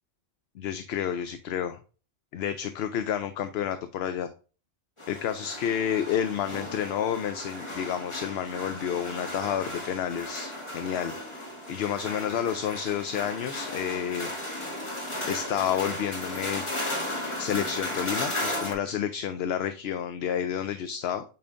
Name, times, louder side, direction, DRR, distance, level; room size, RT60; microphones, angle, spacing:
voice 1, 0.6-1.8 2.3-4.3 5.1-11.1 11.4-14.3 15.3-16.6 17.4-21.2, left 9 dB, 75° left, 9 dB, 0.8 m, -30 dB
sound 1, 5.0-18.7, left 1 dB, 30° left, 1.7 m, -35 dB
8.6 x 4.3 x 2.5 m, 0.37 s
omnidirectional pair, 1.1 m